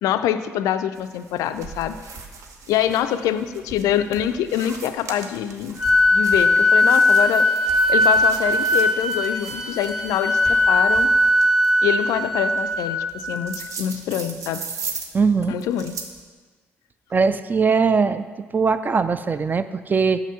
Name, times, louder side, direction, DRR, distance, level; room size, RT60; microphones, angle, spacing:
voice 1, 0.0-1.9 2.7-5.8 6.1-7.5 7.9-10.4 10.7-11.1 11.8-14.6 15.5-15.9, left 10 dB, 60° left, 11 dB, 0.3 m, -25 dB
sound 1, 0.9-16.2, right 5 dB, 55° right, 0.7 m, -39 dB
Hands, 1.5-11.6, right 2 dB, 75° right, 1.7 m, -46 dB
Wind instrument woodwind instrument, 5.8-13.5, left 1 dB, 5° right, 0.7 m, -19 dB
voice 2, 15.1-15.5 17.1-18.3 18.5-20.2, right 5 dB, 30° right, 12 dB, 0.3 m, -20 dB
5.9 x 5.7 x 5.5 m, 1.4 s
figure-of-eight pair, 45°, 6 cm